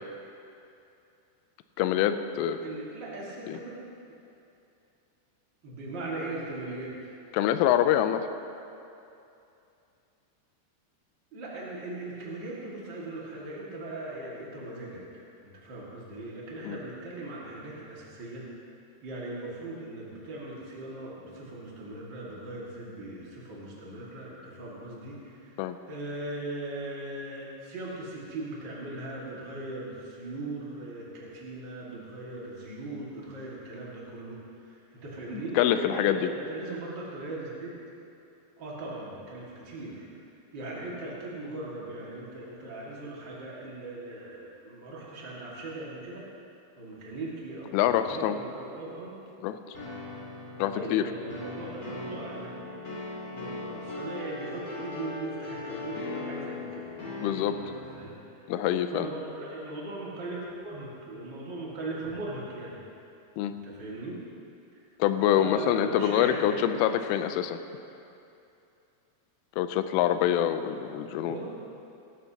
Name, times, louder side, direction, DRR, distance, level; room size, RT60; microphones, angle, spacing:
voice 1, 1.8-2.6 3.5-3.6 7.3-8.3 16.6-16.8 25.6-25.8 35.3-36.3 47.7-48.4 49.4-49.6 50.6-51.0 57.2-57.6 58.5-59.1 63.4-63.5 65.0-67.6 69.6-71.4, left 11 dB, 85° left, 10 dB, 3.1 m, -25 dB
voice 2, 2.6-3.8 5.6-7.1 11.3-15.2 15.5-18.4 19.0-37.8 38.6-40.1 40.5-46.2 46.8-49.1 50.7-52.8 53.3-57.0 57.4-58.1 58.4-58.5 58.9-60.4 60.6-62.8 63.4-64.2 65.3-66.7 71.2-71.5, right 2 dB, 90° right, -6 dB, 0.9 m, -39 dB
sound 1, 49.7-58.0, left 3 dB, 35° left, 2.5 m, -39 dB
18.5 x 15.0 x 2.9 m, 2.7 s
omnidirectional pair, 5.7 m